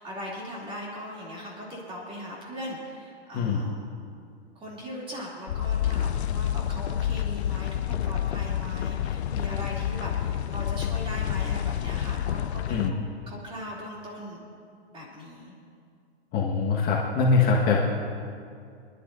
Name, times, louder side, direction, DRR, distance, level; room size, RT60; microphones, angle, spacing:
voice 1, 0.0-3.9 4.5-14.4 14.9-15.5, left 1 dB, 15° right, -4 dB, 3.0 m, -39 dB
sound 1, 5.5-12.9, left 10 dB, 75° left, 0.6 m, -28 dB
voice 2, 16.3-17.8, left 4 dB, 25° left, -3 dB, 1.6 m, -23 dB
25.0 x 11.5 x 2.7 m, 2.3 s
hypercardioid pair, 135°, 33 cm